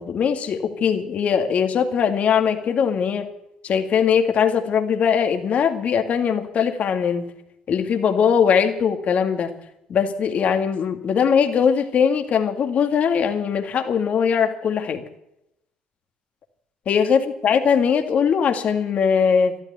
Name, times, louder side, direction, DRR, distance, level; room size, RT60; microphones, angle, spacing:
voice 1, 0.0-3.3 3.6-7.2 7.7-9.5 9.9-15.0 16.9-19.5, left 7 dB, 55° left, 6 dB, 2.1 m, -20 dB
13.0 x 13.0 x 8.3 m, 0.83 s
supercardioid pair, 65°, 3 cm